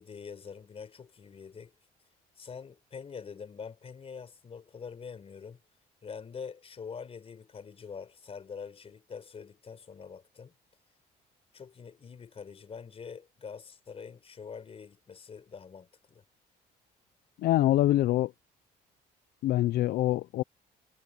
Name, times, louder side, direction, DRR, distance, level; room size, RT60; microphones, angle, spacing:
voice 1, 0.0-1.7 2.4-5.6 6.0-10.5 11.5-16.2, left 6 dB, 35° left, 4.6 m, -45 dB
voice 2, 17.4-18.3 19.4-20.4, left 14 dB, 70° left, 0.6 m, -25 dB
cardioid pair, 110°, 17 cm